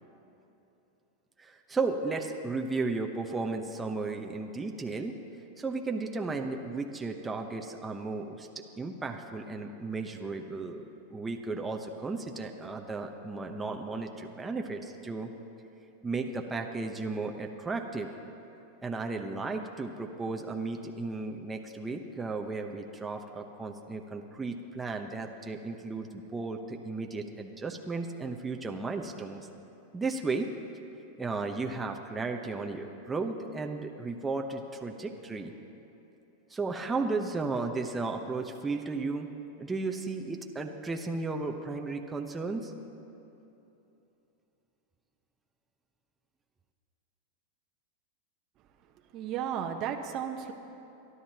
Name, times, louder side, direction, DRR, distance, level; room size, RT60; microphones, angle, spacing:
voice 1, 1.4-5.2 5.6-10.8 11.1-15.3 16.0-18.1 18.8-29.5 29.9-30.5 31.2-35.5 36.5-39.3 39.6-42.7, right 3 dB, 15° right, 2 dB, 0.9 m, -34 dB
voice 2, 49.1-50.5, right 8 dB, 45° right, 3 dB, 1.0 m, -34 dB
27.0 x 11.0 x 2.9 m, 3.0 s
hypercardioid pair, 105°, 0 cm